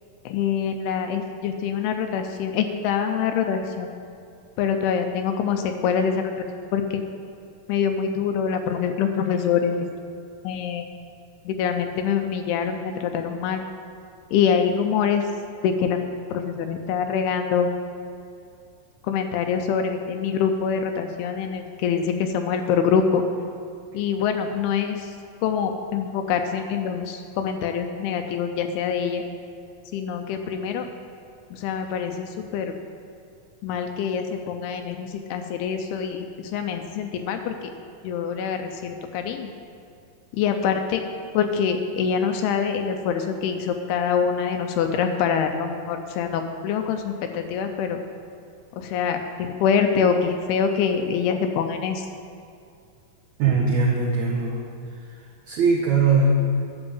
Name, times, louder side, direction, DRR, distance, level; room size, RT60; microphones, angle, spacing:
voice 1, 0.3-3.9 4.6-6.5 6.7-7.0 7.7-9.9 10.4-10.9 11.5-13.6 14.3-15.3 15.6-16.0 16.3-17.7 19.0-23.2 23.9-25.2 25.4-29.2 29.9-30.9 31.5-32.7 33.6-37.7 38.0-39.5 40.3-41.0 41.3-48.0 48.8-52.1, left 7 dB, 80° left, 6 dB, 2.5 m, -25 dB
voice 2, 53.4-54.6 54.9-56.2, right 5 dB, 85° right, -3 dB, 1.6 m, -21 dB
10.5 x 6.0 x 7.1 m, 2.4 s
omnidirectional pair, 4.6 m